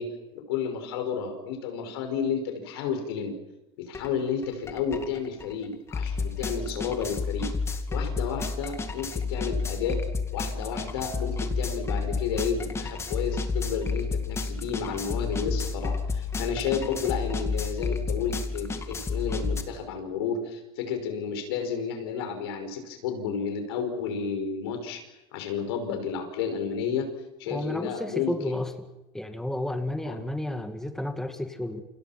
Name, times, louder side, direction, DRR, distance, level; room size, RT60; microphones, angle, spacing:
voice 1, 0.0-3.3 3.8-7.5 7.9-10.0 10.3-25.0 25.3-27.1 27.4-28.6 30.0-30.2, left 6 dB, 90° left, 6 dB, 5.6 m, -31 dB
sound 1, 3.9-4.1 4.4-19.6, left 4 dB, 20° left, 2.3 m, -31 dB
voice 2, 27.5-28.7 29.1-31.8, left 1 dB, 5° left, 7 dB, 2.2 m, -31 dB
28.5 x 26.5 x 6.0 m, 0.95 s
supercardioid pair, 120°, 13 cm